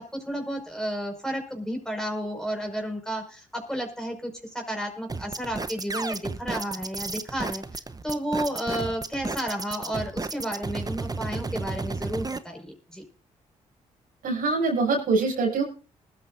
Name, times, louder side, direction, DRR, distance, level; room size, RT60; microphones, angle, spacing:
voice 1, 0.0-13.0, equal, 5° left, 3 dB, 5.7 m, -32 dB
sound 1, 5.1-12.4, right 3 dB, 25° right, 1.2 m, -32 dB
voice 2, 14.2-15.6, right 3 dB, 70° right, -1 dB, 7.7 m, -24 dB
20.0 x 13.0 x 2.7 m, 0.38 s
supercardioid pair, 50°, 15 cm